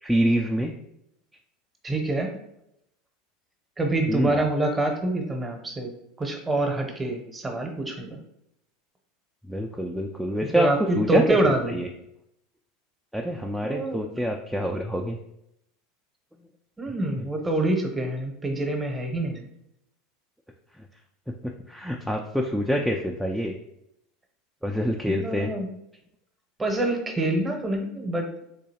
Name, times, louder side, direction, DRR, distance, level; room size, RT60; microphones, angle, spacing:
voice 1, 0.0-0.7 4.1-4.4 9.5-11.9 13.1-15.2 17.2-17.3 20.8-20.9 21.3-23.6 24.6-25.5, equal, ahead, 1 dB, 0.3 m, -26 dB
voice 2, 1.8-2.3 3.8-5.9 6.2-8.2 10.5-10.8 11.1-11.8 13.6-14.0 16.8-19.5 25.1-25.7 26.6-28.3, right 2 dB, 15° right, 3 dB, 0.8 m, -26 dB
3.7 x 2.7 x 2.8 m, 0.80 s
hypercardioid pair, 85°, 0 cm